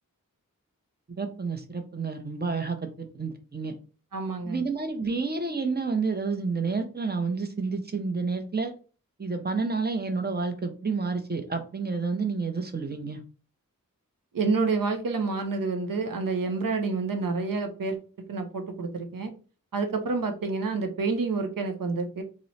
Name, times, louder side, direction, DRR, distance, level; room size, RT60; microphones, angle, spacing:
voice 1, 1.2-3.7 4.4-8.7 9.2-13.2, right 4 dB, 30° right, 5 dB, 0.6 m, -30 dB
voice 2, 4.1-4.6 14.3-18.0 18.3-19.3 19.7-22.2, right 4 dB, 80° right, 6 dB, 0.6 m, -28 dB
3.0 x 2.0 x 4.0 m, 0.37 s
wide cardioid pair, 60°, 33 cm